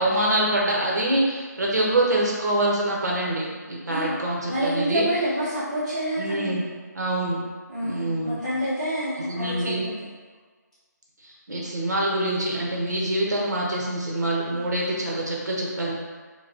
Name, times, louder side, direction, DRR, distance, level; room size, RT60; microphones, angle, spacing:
voice 1, 0.0-5.1 6.2-6.6 6.9-7.4 7.8-8.4 9.3-9.8 11.2-15.9, right 1 dB, 65° right, -3 dB, 1.1 m, -25 dB
voice 2, 4.4-6.5 7.7-10.0, equal, 5° left, -17 dB, 1.1 m, -28 dB
4.9 x 2.3 x 2.9 m, 1.5 s
hypercardioid pair, 175°, 10 cm